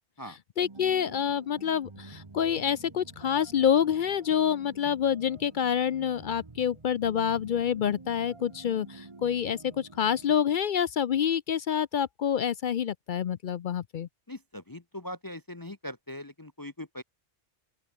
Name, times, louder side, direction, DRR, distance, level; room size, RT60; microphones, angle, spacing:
voice 1, 0.3-14.1, left 8 dB, 60° left, 0.6 m, -27 dB
sound 1, 0.6-10.4, right 3 dB, 25° right, 1.3 m, -49 dB
voice 2, 14.3-17.0, left 1 dB, 20° left, 0.8 m, -41 dB
open air
omnidirectional pair, 1.2 m